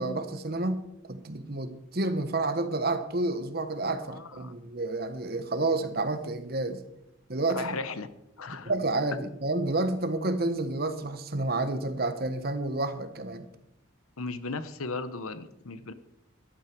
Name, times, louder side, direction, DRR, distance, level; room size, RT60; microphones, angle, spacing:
voice 1, 0.0-6.8 7.3-7.7 8.5-13.4, right 2 dB, 45° right, 10 dB, 1.2 m, -30 dB
voice 2, 4.1-4.5 7.5-8.1 8.4-8.7 14.2-15.9, left 3 dB, 90° left, 13 dB, 1.0 m, -36 dB
14.0 x 11.5 x 4.6 m, 0.83 s
head